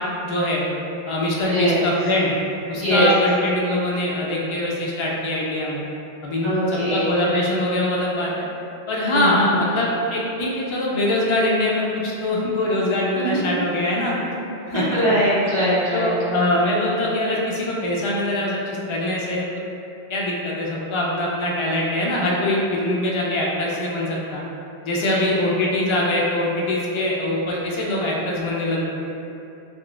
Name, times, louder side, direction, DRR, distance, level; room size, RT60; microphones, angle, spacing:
voice 1, 0.2-0.6 1.1-2.3 2.7-5.8 6.2-8.5 8.9-14.2 14.7-15.0 15.9-19.4 20.1-24.4 24.8-28.8, left 1 dB, 55° left, -4 dB, 0.3 m, -23 dB
voice 2, 1.5-1.8 2.7-3.1 6.4-7.1 9.1-9.5 13.1-13.5 14.7-16.5 25.0-25.2, equal, 45° right, -11 dB, 0.9 m, -22 dB
3.7 x 2.2 x 2.3 m, 2.8 s
omnidirectional pair, 1.1 m